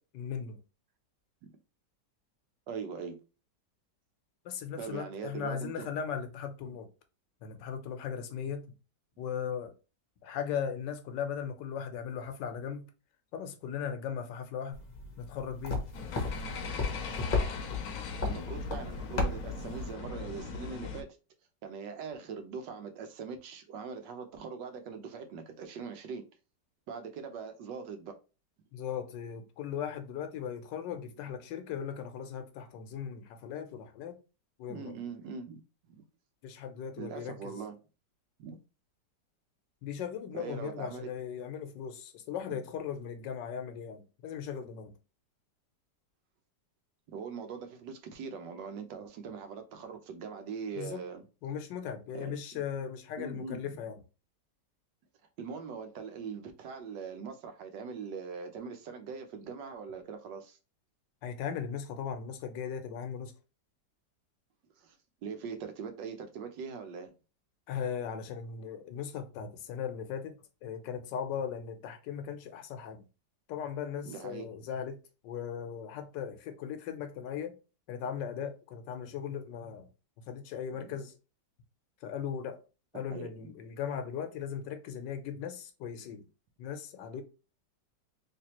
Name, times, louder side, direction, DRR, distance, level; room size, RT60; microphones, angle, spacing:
voice 1, 0.1-0.6 4.4-6.9 7.4-8.6 9.2-9.7 10.2-12.9 13.3-14.8 15.2-15.8 28.7-34.2 34.6-34.9 36.4-37.5 39.8-44.9 50.7-51.0 51.4-54.0 61.2-63.3 67.7-70.3 70.6-73.0 73.5-75.0 75.2-77.6 77.9-79.9 80.3-81.1 82.0-82.6 82.9-86.2 86.6-87.2, left 7 dB, 85° left, 1.4 m, -38 dB
voice 2, 2.7-3.1 4.8-5.9 17.2-17.3 18.2-21.1 21.6-26.2 26.9-28.1 34.7-35.6 35.9-36.0 37.0-37.7 38.4-38.6 40.3-41.1 42.5-42.6 47.1-51.2 52.1-52.7 53.2-53.8 55.4-60.6 64.8-64.9 65.2-67.1 74.1-74.5 80.8-80.9 82.9-83.5, right 6 dB, 85° right, 1.4 m, -41 dB
sound 1, 14.7-19.9, left 3 dB, 40° left, 0.6 m, -35 dB
sound 2, 15.9-21.0, left 4 dB, 65° left, 1.0 m, -39 dB
3.4 x 3.2 x 2.9 m
omnidirectional pair, 1.9 m